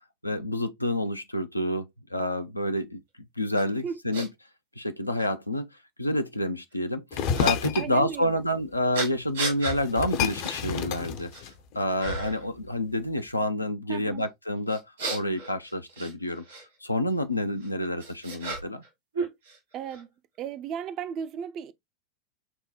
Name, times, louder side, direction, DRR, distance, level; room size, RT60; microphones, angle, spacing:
voice 1, 0.2-3.0 3.4-4.3 4.8-5.7 6.0-14.8 15.1-16.4 16.8-18.8, left 1 dB, 85° left, 0.5 m, -28 dB
sound 1, 3.5-3.6 4.1-4.3 5.2-5.3 7.3-7.5 8.9-9.8 10.4-10.6 11.0-11.5 12.0-12.5 14.7-16.6 17.6-18.9 19.1-20.0, right 3 dB, 70° right, 1.7 m, -34 dB
sound 2, 7.1-7.9 9.3-9.4 9.7-11.8, left 8 dB, 45° left, 0.6 m, -29 dB
voice 2, 7.8-8.4 13.9-14.2 19.7-20.1 20.4-21.7, right 8 dB, 35° right, 0.5 m, -35 dB
5.7 x 2.2 x 3.1 m
figure-of-eight pair, 90°, 0 cm